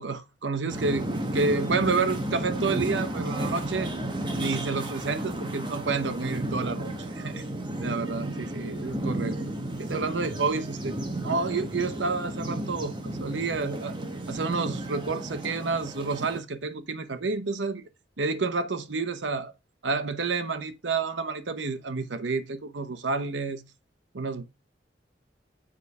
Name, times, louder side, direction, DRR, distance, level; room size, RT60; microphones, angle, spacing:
voice 1, 0.0-3.9 4.4-7.4 7.8-9.4 9.8-11.0 11.2-14.0 14.3-17.8 18.2-19.5 19.8-23.7 24.1-24.5, right 4 dB, 90° right, 0.8 m, -29 dB
sound 1, 0.7-16.4, right 1 dB, 25° right, 1.2 m, -33 dB
7.5 x 4.8 x 4.2 m
head